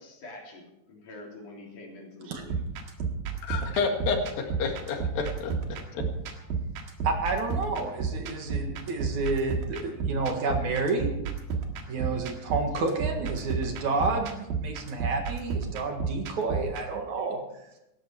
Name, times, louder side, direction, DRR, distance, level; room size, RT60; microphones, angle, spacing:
voice 1, 0.0-2.6, left 2 dB, 60° left, -1 dB, 4.9 m, -46 dB
sound 1, 2.4-16.8, right 5 dB, 90° right, 3.5 m, -33 dB
voice 2, 3.4-4.2 4.6-6.0, left 5 dB, 80° left, 3 dB, 3.6 m, -30 dB
voice 3, 7.0-11.2 11.9-17.4, right 3 dB, 60° right, 4 dB, 3.0 m, -30 dB
17.5 x 14.0 x 4.6 m, 0.89 s
omnidirectional pair, 4.1 m